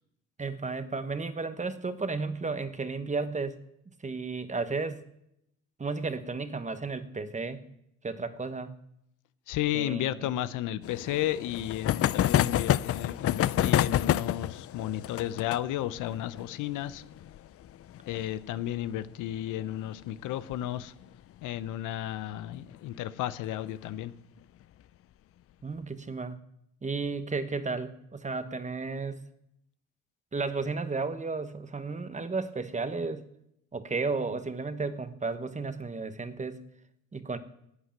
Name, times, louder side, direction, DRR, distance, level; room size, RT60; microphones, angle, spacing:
voice 1, 0.4-3.6 4.0-5.0 5.8-7.6 8.0-8.7 9.7-10.3 25.6-26.4 26.8-29.2 30.3-33.3 33.7-36.6 37.1-37.4, right 4 dB, 25° right, 11 dB, 1.1 m, -33 dB
voice 2, 9.5-17.0 18.1-20.9 21.4-24.1, left 13 dB, 90° left, 15 dB, 0.7 m, -33 dB
sound 1, 10.8-20.0 20.3-20.4 20.6-20.7 21.0-21.1 22.5-22.8 23.4-23.9, left 12 dB, 50° left, 0.4 m, -29 dB
11.5 x 8.2 x 8.8 m, 0.79 s
cardioid pair, 90°, 30 cm